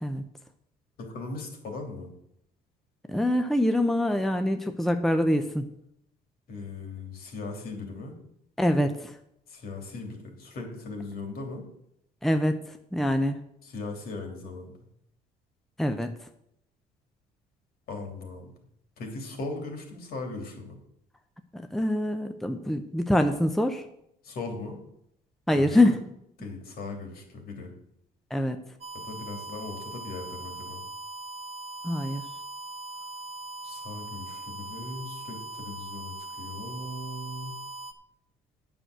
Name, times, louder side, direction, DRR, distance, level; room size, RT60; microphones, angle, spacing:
voice 1, 1.0-2.1 6.5-8.1 9.5-11.6 13.6-14.7 17.9-18.5 19.0-20.8 24.2-24.8 25.5-26.0 26.4-27.7 28.9-30.8 33.6-37.5, left 3 dB, 60° left, 2 dB, 3.2 m, -38 dB
voice 2, 3.1-5.6 8.6-9.1 12.2-12.6 12.9-13.4 15.8-16.1 21.5-23.8 25.5-26.0 28.3-28.6 31.8-32.2, left 1 dB, ahead, 6 dB, 0.7 m, -24 dB
sound 1, 28.8-37.9, right 2 dB, 35° right, 0.9 m, -40 dB
9.0 x 6.2 x 7.9 m, 0.76 s
cardioid pair, 110°, 17 cm